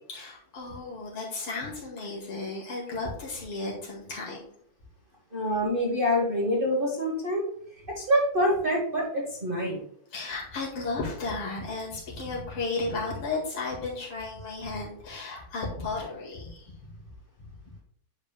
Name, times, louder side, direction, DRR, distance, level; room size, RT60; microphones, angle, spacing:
voice 1, 0.1-4.4 10.1-16.8 17.7-17.8, left 3 dB, 80° left, -3 dB, 2.8 m, -34 dB
voice 2, 5.3-7.4 8.0-9.8, equal, 30° right, -3 dB, 1.1 m, -26 dB
9.7 x 5.2 x 2.3 m, 0.66 s
omnidirectional pair, 2.4 m